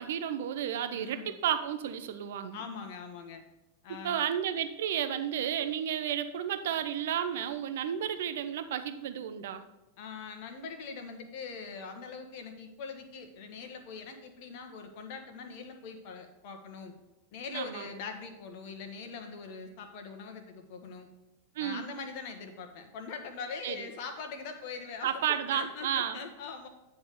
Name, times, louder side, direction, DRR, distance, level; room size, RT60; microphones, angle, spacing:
voice 1, 0.0-2.6 4.0-9.6 17.5-17.9 21.6-21.9 23.6-23.9 25.0-26.2, right 9 dB, 55° right, 9 dB, 0.6 m, -32 dB
voice 2, 0.9-1.3 2.5-3.4 3.8-4.2 10.0-16.9 17.3-21.1 21.6-26.7, left 5 dB, 45° left, 5 dB, 1.3 m, -42 dB
9.6 x 3.5 x 6.6 m, 1.0 s
figure-of-eight pair, 90°, 0 cm